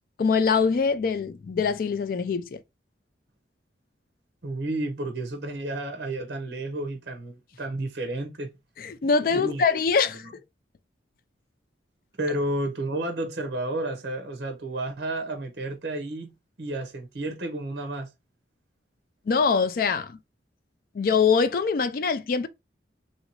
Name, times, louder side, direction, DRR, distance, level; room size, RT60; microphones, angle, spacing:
voice 1, 0.2-2.6 8.8-10.3 19.3-20.2 20.9-22.5, left 5 dB, 50° left, 0.3 m, -23 dB
voice 2, 4.4-8.5 9.2-9.6 10.1-10.3 12.2-16.3 16.6-18.1, right 1 dB, 60° right, 0.7 m, -31 dB
3.0 x 2.8 x 2.8 m
head